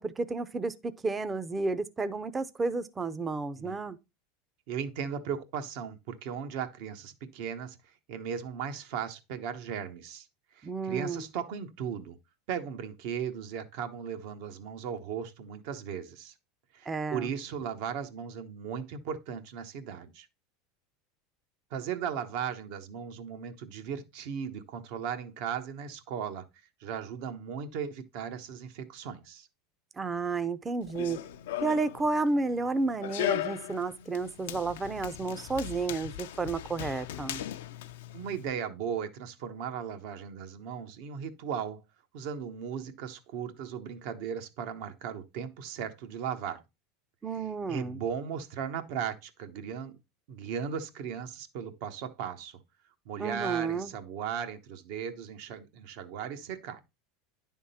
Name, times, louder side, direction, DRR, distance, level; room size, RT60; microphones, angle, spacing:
voice 1, 0.0-4.0 10.6-11.3 16.9-17.3 30.0-31.2 31.6-37.4 47.2-48.0 53.2-53.9, right 3 dB, 20° right, 0.5 m, -31 dB
voice 2, 4.7-7.8 8.1-10.3 10.5-12.2 12.5-16.3 16.7-20.3 21.7-26.4 26.8-29.5 38.1-41.8 42.1-46.6 47.3-50.0 50.3-52.6 53.0-56.8, right 7 dB, 65° right, 1.0 m, -37 dB
Run, 30.8-38.5, left 12 dB, 85° left, 0.5 m, -38 dB
10.0 x 3.6 x 4.2 m
supercardioid pair, 110°, 0 cm